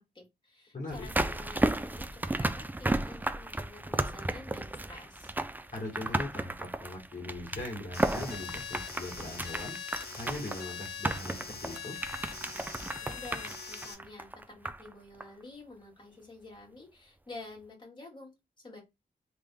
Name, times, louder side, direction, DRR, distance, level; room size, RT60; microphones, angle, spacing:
voice 1, 0.1-5.3 13.0-14.3 14.5-18.8, left 2 dB, 30° left, -2 dB, 1.8 m, -49 dB
voice 2, 0.7-1.1 5.7-9.8 10.1-11.9, left 2 dB, 50° left, -2 dB, 1.5 m, -40 dB
sound 1, 0.9-14.9 15.2-15.3, right 2 dB, 10° right, 0.4 m, -34 dB
sound 2, 7.9-13.9, left 6 dB, 85° left, 1.0 m, -42 dB
3.4 x 3.4 x 2.2 m, 0.21 s
wide cardioid pair, 105°, 16 cm